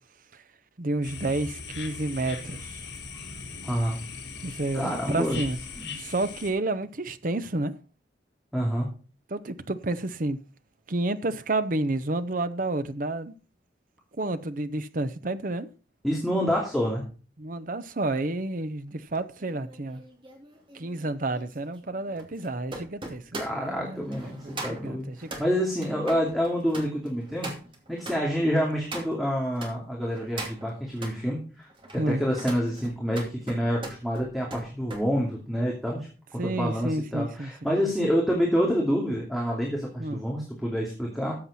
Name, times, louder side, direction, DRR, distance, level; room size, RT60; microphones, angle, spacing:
voice 1, 0.8-2.8 4.4-5.6 6.0-7.7 9.3-10.4 10.9-13.3 14.2-15.7 17.4-20.0 20.7-23.2 23.5-25.3 28.5-28.6 32.0-32.2 36.4-37.5 40.0-40.2, right 2 dB, 50° right, 0.8 m, -30 dB
sound 1, 1.0-6.5, left 4 dB, 90° left, 4.7 m, -39 dB
voice 2, 3.6-4.0 4.7-5.4 5.8-5.9 8.5-8.9 16.0-17.0 23.4-25.1 25.4-27.5 27.9-31.4 31.9-41.3, equal, ahead, 2.6 m, -27 dB
sound 2, 19.1-29.7 30.1-31.2 31.7-35.1 35.4-35.7, right 2 dB, 30° right, 2.5 m, -41 dB
13.5 x 7.9 x 4.2 m
head